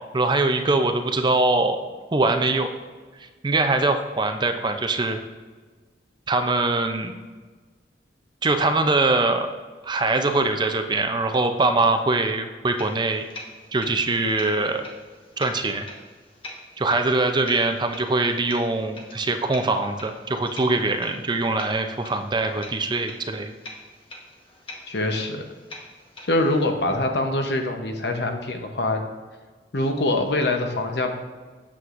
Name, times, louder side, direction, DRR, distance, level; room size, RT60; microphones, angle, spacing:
voice 1, 0.0-1.8 2.1-2.7 3.4-5.2 6.3-7.2 8.4-9.5 9.9-13.2 13.7-14.8 15.4-15.9 16.8-23.5, right 2 dB, 25° right, 6 dB, 0.5 m, -22 dB
sound 1, 12.8-26.7, left 2 dB, 30° left, 1.1 m, -44 dB
voice 2, 24.9-25.5 26.3-29.0 29.7-31.1, left 2 dB, 70° left, 5 dB, 0.9 m, -24 dB
8.4 x 7.6 x 2.5 m, 1.4 s
head